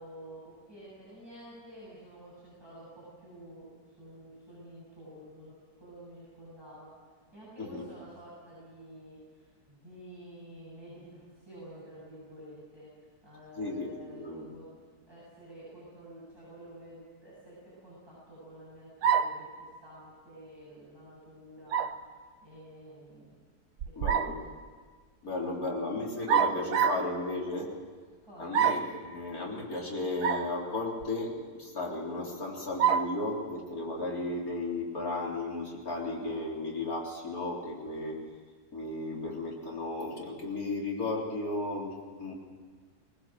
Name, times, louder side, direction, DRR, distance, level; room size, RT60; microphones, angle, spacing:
voice 1, 0.0-6.9 7.3-14.7 15.1-23.3 23.8-24.5 25.2-25.8 28.2-28.7, right 1 dB, 15° right, -9 dB, 8.2 m, -50 dB
voice 2, 13.6-14.5 24.0-24.4 25.2-27.7 28.4-38.2 38.7-42.3, left 2 dB, 65° left, -3 dB, 4.3 m, -34 dB
sound 1, 19.0-19.5 21.7-22.0 23.8-24.4 26.3-27.1 28.5-29.0 30.2-30.5 31.0-31.1 32.8-33.2, right 8 dB, 85° right, 1.4 m, -26 dB
21.0 x 19.5 x 7.8 m, 1.5 s
omnidirectional pair, 1.7 m